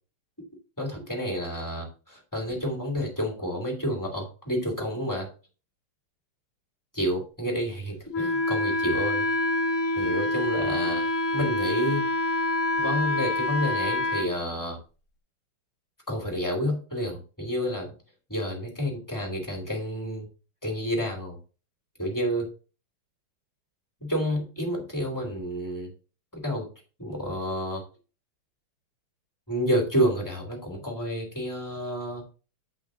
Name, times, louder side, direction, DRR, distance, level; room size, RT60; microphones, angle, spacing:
voice 1, 0.8-5.3 6.9-9.3 10.0-11.1 11.3-12.0 12.8-14.8 16.1-17.9 18.3-20.3 20.6-21.4 22.0-22.5 24.0-25.9 26.3-26.7 27.0-27.8 29.5-32.2, equal, 10° left, 1 dB, 2.5 m, -29 dB
Wind instrument woodwind instrument, 8.1-14.3, left 1 dB, 50° left, 1.3 m, -26 dB
9.3 x 5.7 x 3.7 m, 0.35 s
omnidirectional pair, 2.4 m